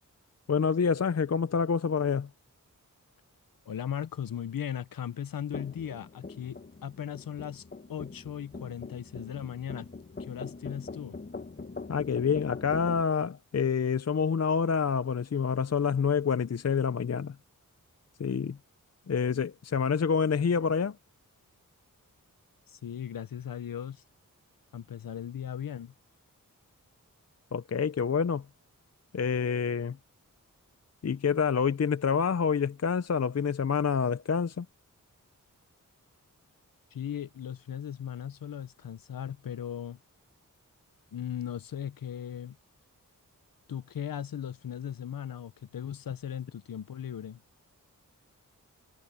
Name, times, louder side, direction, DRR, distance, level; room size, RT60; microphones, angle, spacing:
voice 1, 0.5-2.3 11.9-17.4 18.2-18.6 19.1-21.0 27.5-28.4 29.1-30.0 31.0-34.7, left 6 dB, 50° left, 0.7 m, -27 dB
voice 2, 3.7-9.9 10.2-11.2 22.7-24.0 24.7-25.9 36.9-40.0 41.1-42.6 43.7-47.4, left 9 dB, 85° left, 0.8 m, -38 dB
sound 1, 5.5-13.0, left 3 dB, 30° left, 1.1 m, -43 dB
wide cardioid pair, 70°, 33 cm